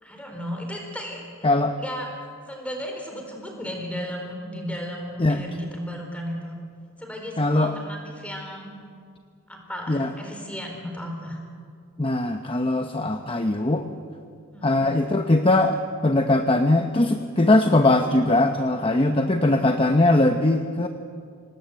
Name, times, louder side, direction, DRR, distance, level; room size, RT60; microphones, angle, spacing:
voice 1, 0.0-1.2 1.8-2.1 2.5-6.6 7.0-8.7 9.5-11.4 14.5-14.9, equal, 5° left, 2 dB, 4.3 m, -35 dB
voice 2, 1.4-1.8 5.2-5.4 7.4-7.7 9.9-10.1 12.0-13.9 14.6-20.9, left 2 dB, 25° left, 6 dB, 0.9 m, -21 dB
26.0 x 19.0 x 8.0 m, 2.2 s
head